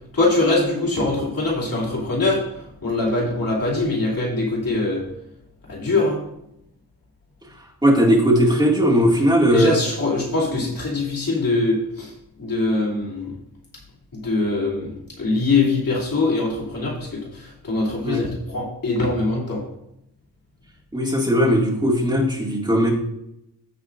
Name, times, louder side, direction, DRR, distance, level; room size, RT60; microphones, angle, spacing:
voice 1, 0.1-5.0 5.7-6.2 9.5-13.4 14.1-19.6, left 2 dB, 60° left, -6 dB, 2.7 m, -23 dB
voice 2, 7.8-9.8 10.6-10.7 18.0-18.2 20.9-22.9, equal, 10° right, -4 dB, 2.1 m, -18 dB
15.5 x 5.5 x 2.5 m, 0.81 s
wide cardioid pair, 115°, 40 cm